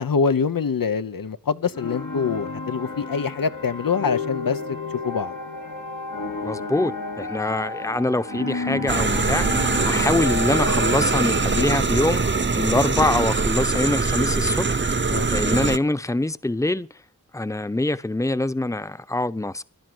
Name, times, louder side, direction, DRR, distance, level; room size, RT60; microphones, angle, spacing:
voice 1, 0.0-4.8 5.0-5.3 11.5-11.8 15.1-15.3, left 5 dB, 85° left, 0.9 m, -25 dB
sound 1, 1.7-13.0, left 3 dB, 70° left, 2.7 m, -32 dB
voice 2, 6.4-12.2 12.5-16.9 17.3-19.6, left 2 dB, 10° left, 0.8 m, -24 dB
sound 2, 8.9-15.8, right 4 dB, 35° right, 0.8 m, -22 dB
16.0 x 11.5 x 7.9 m
wide cardioid pair, 50°, 33 cm